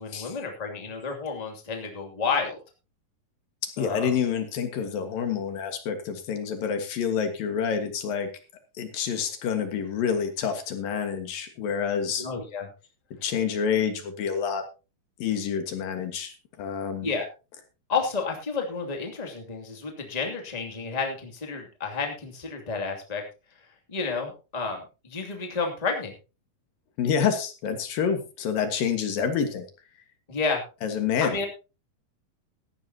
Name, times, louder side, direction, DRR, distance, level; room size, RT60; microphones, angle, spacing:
voice 1, 0.0-2.6 3.8-4.1 12.2-12.7 17.0-17.2 17.9-23.2 23.9-26.1 30.3-30.6 31.2-31.4, left 4 dB, 15° left, 2 dB, 2.0 m, -30 dB
voice 2, 3.6-8.3 8.8-12.3 13.2-14.6 15.2-17.1 27.0-29.6 30.8-31.4, left 7 dB, 70° left, 7 dB, 3.3 m, -28 dB
16.5 x 13.0 x 2.9 m, 0.31 s
omnidirectional pair, 4.2 m